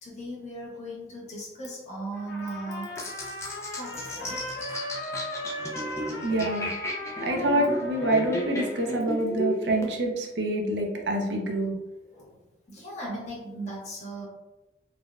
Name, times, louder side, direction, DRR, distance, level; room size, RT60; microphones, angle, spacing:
voice 1, 0.0-3.0 3.7-4.4 5.5-5.6 12.0-12.4 12.7-14.3, right 1 dB, 40° left, -5 dB, 0.9 m, -38 dB
Trumpet, 2.1-8.9, left 1 dB, 80° left, 0.6 m, -38 dB
sound 1, 3.0-9.9, equal, 15° left, 0.4 m, -34 dB
voice 2, 6.0-6.7 7.2-11.8, right 1 dB, 85° right, 1 dB, 0.6 m, -26 dB
3.4 x 2.1 x 2.4 m, 1.0 s
head